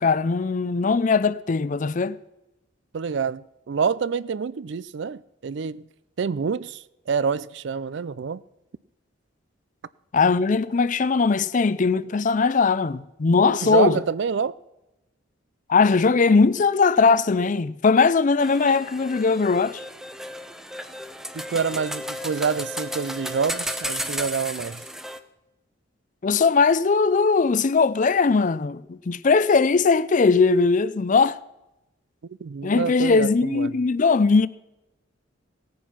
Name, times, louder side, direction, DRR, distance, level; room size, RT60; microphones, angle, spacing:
voice 1, 0.0-2.2 10.1-14.0 15.7-19.8 26.2-31.4 32.6-34.5, left 4 dB, 40° left, 0.4 m, -20 dB
voice 2, 2.9-5.9 6.2-8.4 13.6-14.6 21.3-24.8 32.3-33.7, right 6 dB, 60° right, 0.4 m, -27 dB
sound 1, 18.4-25.2, equal, ahead, 0.6 m, -34 dB
17.5 x 9.3 x 5.8 m
head